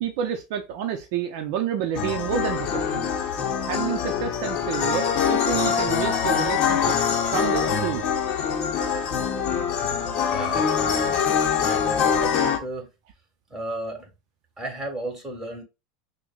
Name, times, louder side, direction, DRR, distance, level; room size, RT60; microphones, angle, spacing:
voice 1, 0.0-3.1 3.7-8.0, right 9 dB, 60° right, 0.6 m, -29 dB
sound 1, 1.9-12.6, left 7 dB, 45° left, 0.8 m, -24 dB
voice 2, 10.3-11.2 11.6-12.9 13.5-14.1 14.6-15.6, right 1 dB, 10° right, 1.6 m, -34 dB
6.0 x 2.1 x 2.4 m
supercardioid pair, 125°, 3 cm